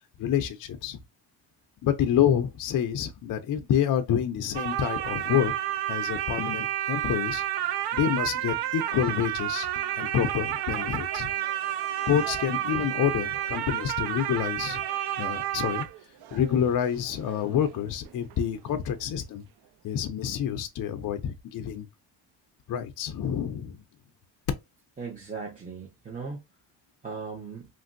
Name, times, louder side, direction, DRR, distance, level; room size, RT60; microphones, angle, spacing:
voice 1, 0.2-1.0 1.8-5.5 5.9-7.4 7.9-9.7 10.0-11.3 12.1-15.9 16.3-19.5 19.8-21.9 22.7-23.8, left 9 dB, 50° left, 0.5 m, -28 dB
sound 1, 4.5-18.4 18.7-18.8, right 12 dB, 65° right, 0.5 m, -31 dB
voice 2, 25.0-26.4 27.0-27.7, right 4 dB, 20° right, 0.8 m, -37 dB
3.1 x 2.5 x 2.5 m
cardioid pair, 140°, 43 cm